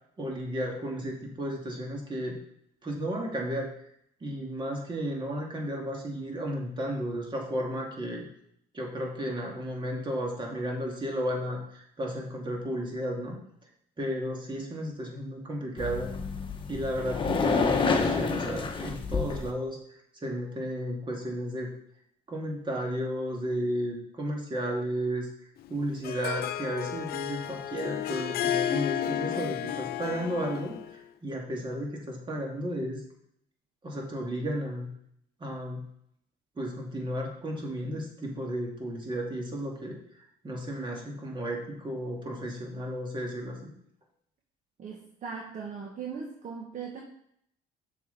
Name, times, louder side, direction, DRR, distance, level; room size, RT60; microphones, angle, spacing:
voice 1, 0.2-2.4 2.8-3.7 4.2-8.3 8.7-13.4 14.0-16.1 16.7-19.8 20.2-21.7 22.3-25.3 25.7-33.0 33.8-34.9 35.4-35.8 36.6-40.0 40.4-43.7, equal, 30° right, 0 dB, 2.2 m, -33 dB
sound 1, 15.8-19.5, left 4 dB, 30° left, 1.0 m, -28 dB
Harp, 25.6-31.0, left 10 dB, 65° left, 0.5 m, -32 dB
voice 2, 44.8-47.0, right 6 dB, 50° right, -1 dB, 1.3 m, -39 dB
7.2 x 6.4 x 4.0 m, 0.71 s
cardioid pair, 110°, 17 cm